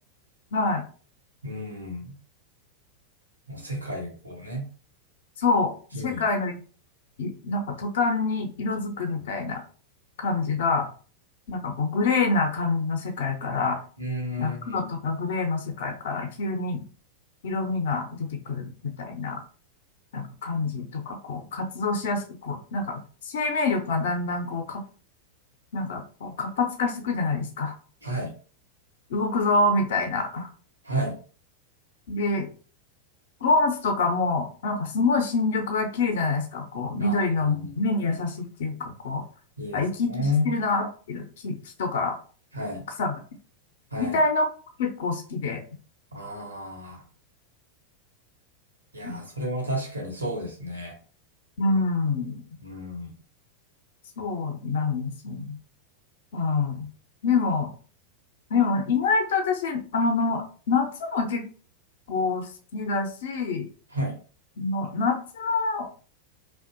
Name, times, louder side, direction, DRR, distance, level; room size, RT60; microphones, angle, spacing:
voice 1, 0.5-0.8 5.4-5.7 6.0-6.6 7.2-9.6 10.2-10.9 11.5-13.8 14.4-16.8 17.4-19.4 20.1-23.0 23.2-24.8 25.7-27.7 29.1-30.5 32.1-32.5 33.4-39.2 39.7-40.1 40.4-42.2 43.0-43.1 44.0-44.5 44.8-45.6 49.0-49.2 51.6-52.4 54.2-55.6 56.3-56.9 57.2-57.7 58.5-61.4 62.1-63.7 64.6-65.9, left 3 dB, 55° left, 4 dB, 0.5 m, -26 dB
voice 2, 1.4-2.1 3.5-4.7 5.9-6.2 9.2-9.3 14.0-14.9 28.0-28.3 30.9-31.2 37.0-37.7 39.6-40.5 42.5-42.8 43.9-44.2 46.1-47.0 48.9-51.0 52.6-53.1 63.9-64.1, left 1 dB, 85° right, 1 dB, 0.8 m, -32 dB
2.6 x 2.1 x 2.5 m, 0.40 s
figure-of-eight pair, 90°, 0 cm